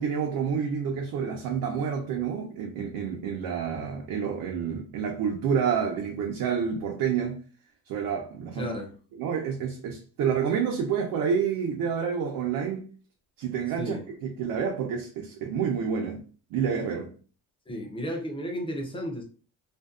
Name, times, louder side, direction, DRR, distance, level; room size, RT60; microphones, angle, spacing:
voice 1, 0.0-7.4 7.9-8.7 9.2-12.8 13.4-16.2 16.5-17.1, right 7 dB, 80° right, 0.6 m, -29 dB
voice 2, 8.6-8.9 13.8-14.1 17.7-19.2, equal, 15° left, 0.4 m, -33 dB
2.5 x 2.2 x 2.3 m
cardioid pair, 165°, 34 cm